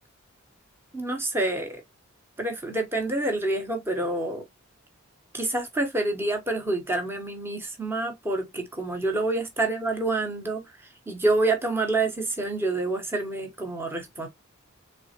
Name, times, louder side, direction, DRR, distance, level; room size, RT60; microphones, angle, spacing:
voice 1, 0.9-1.8 2.4-4.4 5.3-10.6 11.1-14.3, right 2 dB, 10° right, 0.8 m, -27 dB
3.7 x 3.2 x 2.8 m
head